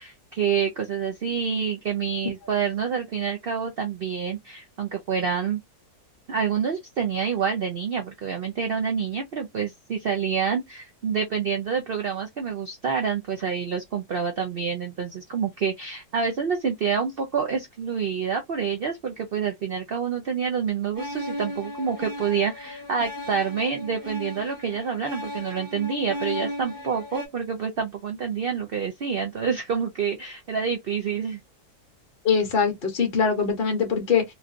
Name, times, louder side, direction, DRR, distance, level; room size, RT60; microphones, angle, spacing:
voice 1, 0.0-5.6 6.3-31.4, right 6 dB, 80° right, 0.5 m, -27 dB
sound 1, 21.0-27.3, left 1 dB, 20° right, 0.6 m, -35 dB
voice 2, 32.2-34.2, left 6 dB, 45° left, 0.9 m, -22 dB
3.1 x 2.6 x 2.4 m
omnidirectional pair, 1.7 m